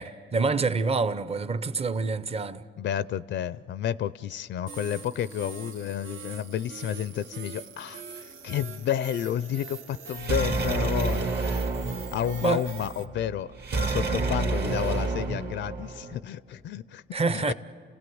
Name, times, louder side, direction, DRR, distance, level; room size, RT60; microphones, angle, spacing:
voice 1, 0.0-2.6 12.4-12.6 17.1-17.5, right 4 dB, 30° right, 0.8 m, -27 dB
voice 2, 2.8-11.6 12.1-13.5 13.7-17.0 17.3-17.5, left 10 dB, 65° left, 0.5 m, -31 dB
sound 1, 4.7-13.1, right 6 dB, 80° right, 1.1 m, -43 dB
sound 2, 10.2-16.2, right 3 dB, 55° right, 2.0 m, -29 dB
29.5 x 17.0 x 7.8 m
cardioid pair, 90°, 20 cm